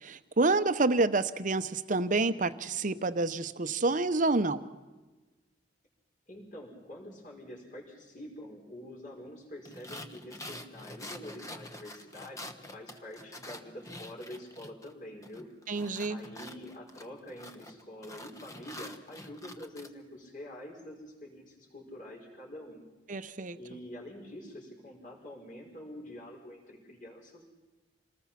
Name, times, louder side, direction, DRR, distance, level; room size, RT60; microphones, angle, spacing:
voice 1, 0.0-4.6 15.7-16.2 23.1-23.6, right 3 dB, 45° right, 11 dB, 0.9 m, -28 dB
voice 2, 6.3-15.5 16.1-22.8 23.6-27.4, left 1 dB, 50° left, 0 dB, 5.6 m, -46 dB
sound 1, 9.6-14.9 15.2-19.9, left 1 dB, 20° left, 1.1 m, -46 dB
28.0 x 20.0 x 5.8 m, 1.2 s
head